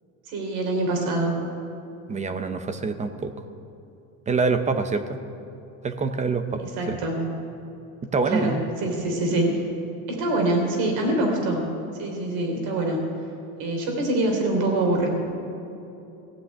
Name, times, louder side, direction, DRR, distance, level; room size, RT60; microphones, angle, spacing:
voice 1, 0.2-1.4 6.6-7.3 8.3-9.6 10.1-11.6 11.9-13.0 13.6-15.1, right 2 dB, 70° right, 2 dB, 3.4 m, -25 dB
voice 2, 2.1-3.3 4.3-5.2 5.8-7.0 8.1-8.6, right 4 dB, 20° right, 9 dB, 0.6 m, -25 dB
15.5 x 6.1 x 9.6 m, 2.9 s
cardioid pair, 140°, 38 cm